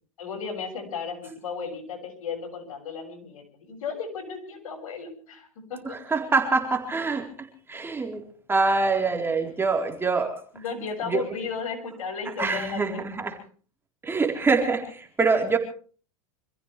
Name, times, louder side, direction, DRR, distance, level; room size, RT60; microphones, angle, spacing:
voice 1, 0.2-6.0 10.5-13.0, left 5 dB, 80° left, 6.9 m, -34 dB
voice 2, 5.8-10.4 11.0-11.2 12.4-13.3 14.0-15.6, right 4 dB, 15° right, 4.0 m, -25 dB
27.0 x 15.5 x 3.4 m
hypercardioid pair, 120°, 18 cm